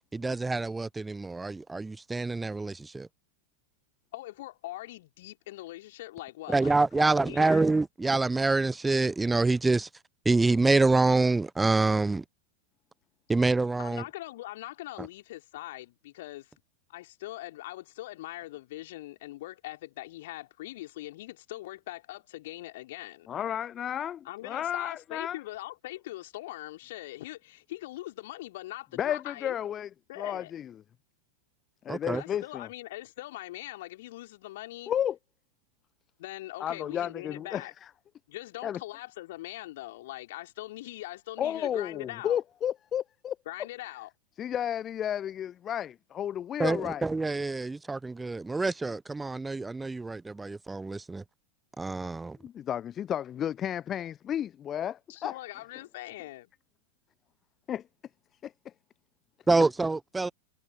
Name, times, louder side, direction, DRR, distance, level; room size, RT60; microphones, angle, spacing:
voice 1, 0.1-3.1 6.5-9.9 10.2-12.2 13.3-14.0 15.0-15.1 31.9-32.2 46.6-51.2 51.8-52.4 59.5-60.3, right 3 dB, 10° right, 0.8 m, -26 dB
voice 2, 4.1-7.7 13.8-16.5 16.9-23.3 24.2-29.6 30.1-30.5 32.1-34.9 36.2-37.7 38.3-42.4 43.4-44.1 55.1-56.5, left 16 dB, 55° left, 3.1 m, -42 dB
voice 3, 23.3-25.4 29.0-29.9 30.2-30.7 31.8-32.7 34.9-35.2 36.6-37.7 38.6-38.8 41.4-43.4 44.4-47.0 52.4-55.3 57.7-57.8 58.4-58.7, left 10 dB, 25° left, 0.7 m, -32 dB
figure-of-eight pair, 90°, 0 cm